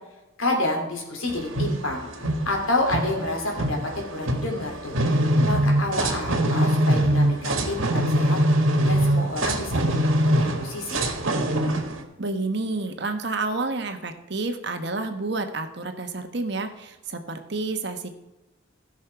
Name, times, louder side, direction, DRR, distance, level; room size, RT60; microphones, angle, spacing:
voice 1, 0.4-2.0 2.4-5.0 5.2-8.4 8.8-11.0, left 2 dB, 85° left, 1 dB, 3.2 m, -29 dB
sound 1, 1.3-12.0, right 1 dB, 75° right, 1.7 m, -23 dB
voice 2, 12.2-18.1, right 3 dB, 55° right, 7 dB, 1.2 m, -29 dB
15.5 x 6.4 x 4.6 m, 1.0 s
head